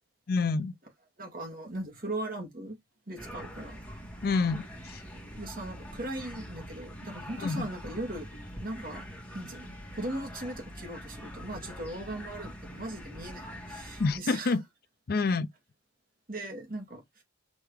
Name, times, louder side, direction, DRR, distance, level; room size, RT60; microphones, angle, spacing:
voice 1, 0.3-0.7 4.2-5.0 7.4-7.7 14.0-14.6 15.1-15.5, left 4 dB, 45° left, 0.4 m, -28 dB
voice 2, 1.2-2.8 3.1-3.8 5.4-8.3 8.6-9.1 9.3-14.6 15.2-15.4 16.3-17.2, right 1 dB, 45° right, 2.4 m, -39 dB
sound 1, 3.2-14.2, equal, 5° left, 2.6 m, -44 dB
6.3 x 4.5 x 3.4 m
head